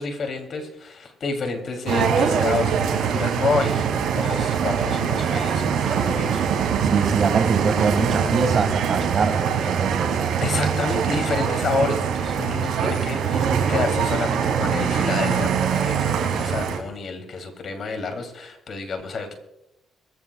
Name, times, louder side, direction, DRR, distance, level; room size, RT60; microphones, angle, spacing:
voice 1, 0.0-6.5 10.4-19.3, left 4 dB, 55° left, 5 dB, 3.0 m, -29 dB
sound 1, 1.9-16.8, right 7 dB, 80° right, 3.0 m, -23 dB
voice 2, 6.8-10.1, right 5 dB, 50° right, 8 dB, 1.9 m, -23 dB
22.5 x 15.0 x 2.4 m, 0.86 s
cardioid pair, 90°, 0 cm